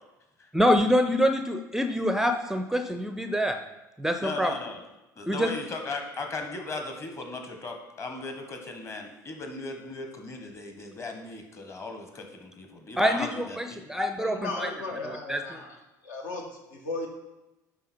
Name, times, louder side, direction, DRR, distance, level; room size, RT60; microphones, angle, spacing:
voice 1, 0.5-3.6 4.0-4.5 5.3-5.5 13.0-14.7 15.1-15.6, equal, 5° right, 7 dB, 0.5 m, -26 dB
voice 2, 4.2-4.8 5.2-13.8, left 3 dB, 25° left, 4 dB, 1.4 m, -37 dB
voice 3, 14.2-15.8 16.0-17.1, left 2 dB, 70° left, 1 dB, 1.5 m, -36 dB
10.5 x 3.8 x 4.4 m, 1.0 s
figure-of-eight pair, 65°, 10 cm